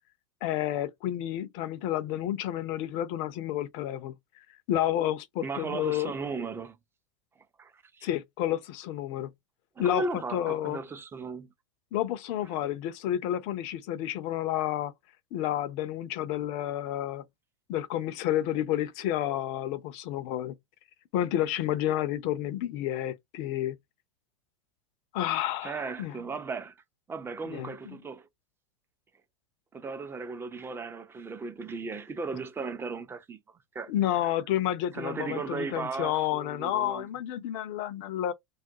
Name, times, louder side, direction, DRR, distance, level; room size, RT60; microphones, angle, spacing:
voice 1, 0.4-4.1 4.7-6.1 8.0-9.3 9.8-10.8 11.9-14.9 15.3-17.3 17.7-20.6 21.1-23.8 25.1-26.1 27.5-28.0 33.9-38.3, left 12 dB, 45° left, 0.5 m, -30 dB
voice 2, 5.4-6.8 7.6-8.1 9.8-11.5 25.6-26.7 27.1-28.3 29.7-33.4 33.7-33.9 34.9-37.1, right 4 dB, 15° right, 0.5 m, -36 dB
2.4 x 2.1 x 2.7 m
hypercardioid pair, 90°, 16 cm